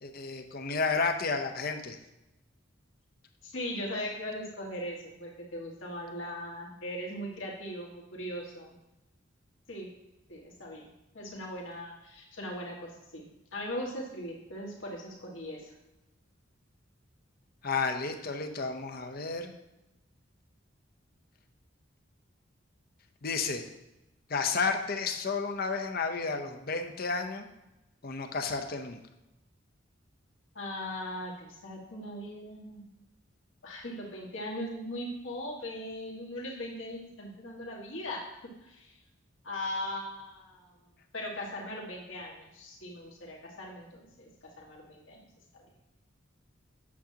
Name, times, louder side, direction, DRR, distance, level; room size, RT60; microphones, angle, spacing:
voice 1, 0.0-2.0 17.6-19.5 23.2-23.7 24.3-27.5 28.0-29.0, left 4 dB, 50° left, 6 dB, 0.7 m, -32 dB
voice 2, 3.4-8.7 9.7-9.9 10.3-10.8 11.1-13.2 13.5-15.7 30.5-33.0 33.6-38.2 38.6-39.0 39.4-40.7 41.1-44.3 44.6-45.3 45.5-45.6, left 1 dB, 80° left, -2 dB, 1.8 m, -39 dB
8.3 x 7.3 x 2.9 m, 0.95 s
head